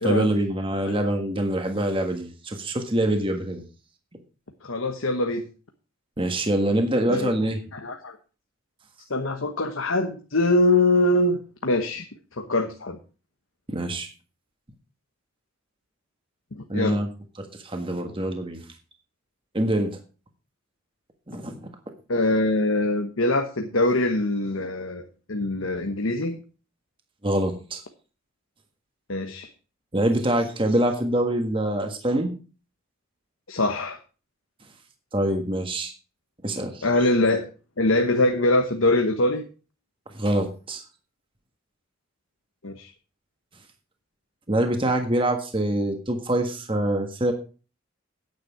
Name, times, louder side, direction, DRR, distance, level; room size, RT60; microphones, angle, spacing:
voice 1, 0.0-3.6 6.2-7.6 13.7-14.1 16.7-17.1 17.4-18.6 19.5-20.0 21.3-21.6 27.2-27.8 29.9-32.3 35.1-35.9 36.4-36.8 40.1-40.8 44.5-47.3, right 1 dB, 25° right, 5 dB, 1.5 m, -25 dB
voice 2, 4.6-5.5 7.1-7.3 7.7-8.2 9.1-12.0 12.4-13.0 16.5-17.0 22.1-26.4 29.1-29.5 33.5-34.0 36.8-37.5 37.8-39.4 42.6-42.9, left 2 dB, 70° left, 5 dB, 1.1 m, -23 dB
9.5 x 9.4 x 4.7 m, 0.35 s
head